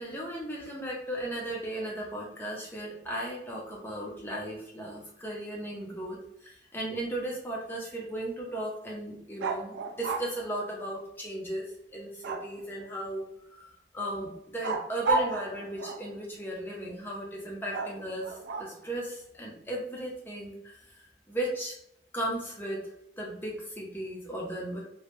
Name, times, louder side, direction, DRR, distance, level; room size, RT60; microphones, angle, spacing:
voice 1, 0.0-13.2 13.6-21.8 22.1-22.9 23.2-24.8, right 1 dB, 10° left, -3 dB, 0.5 m, -36 dB
sound 1, 9.4-10.3 12.2-12.8 14.6-16.2 17.7-18.9, right 3 dB, 85° right, 0.3 m, -32 dB
2.1 x 2.0 x 3.0 m, 0.75 s
head